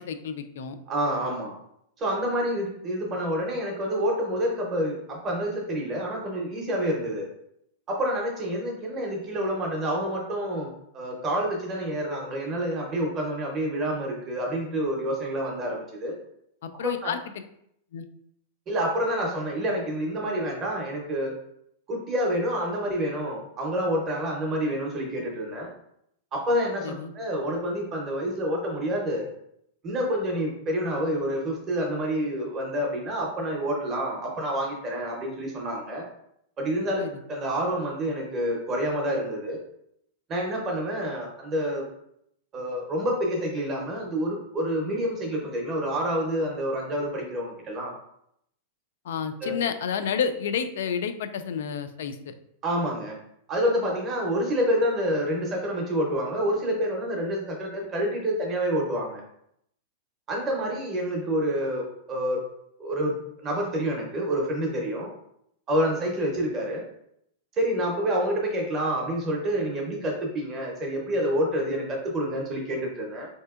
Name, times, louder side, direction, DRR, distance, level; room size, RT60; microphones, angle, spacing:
voice 1, 0.0-0.8 16.6-17.2 17.9-18.1 26.8-27.1 37.0-37.1 49.0-52.3, left 7 dB, 65° left, 9 dB, 0.3 m, -30 dB
voice 2, 0.9-1.5 2.0-7.3 7.9-16.2 17.0-17.1 18.7-21.3 21.9-25.7 26.3-29.3 29.8-36.1 36.6-39.6 40.3-41.8 42.5-47.9 49.4-49.6 52.6-53.2 53.5-59.2 60.3-62.5 62.8-65.1 65.7-66.8 67.5-73.3, equal, 15° right, 0 dB, 0.6 m, -28 dB
4.2 x 2.7 x 2.3 m, 0.73 s
supercardioid pair, 180°, 0 cm